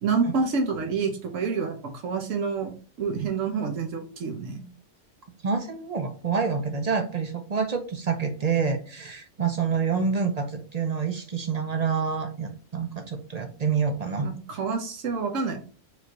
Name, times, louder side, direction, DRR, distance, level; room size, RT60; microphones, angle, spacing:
voice 1, 0.0-1.8 2.0-4.7 14.2-15.6, right 5 dB, 85° right, 3 dB, 1.3 m, -28 dB
voice 2, 5.4-14.3, right 5 dB, 45° right, 6 dB, 0.5 m, -27 dB
5.0 x 3.2 x 3.0 m, 0.39 s
omnidirectional pair, 1.3 m